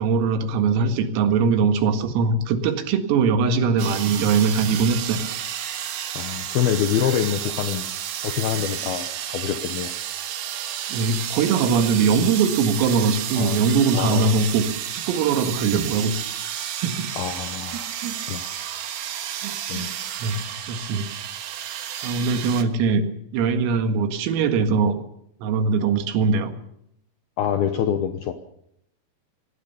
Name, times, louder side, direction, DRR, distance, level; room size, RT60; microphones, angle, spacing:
voice 1, 0.0-5.2 10.9-14.7 14.9-16.2 16.8-17.1 17.7-18.1 19.4-19.9 20.2-21.0 22.0-23.1 23.3-25.0 25.4-26.5, right 5 dB, 80° right, 8 dB, 4.5 m, -21 dB
sound 1, 3.8-22.6, right 10 dB, 65° right, 2.8 m, -31 dB
voice 2, 6.2-7.8 8.2-9.9 13.4-13.7 13.9-14.5 17.2-18.0 18.3-18.5 19.7-19.9 27.4-28.3, left 9 dB, 75° left, 8 dB, 2.3 m, -26 dB
24.5 x 18.5 x 7.0 m, 0.75 s
omnidirectional pair, 6.0 m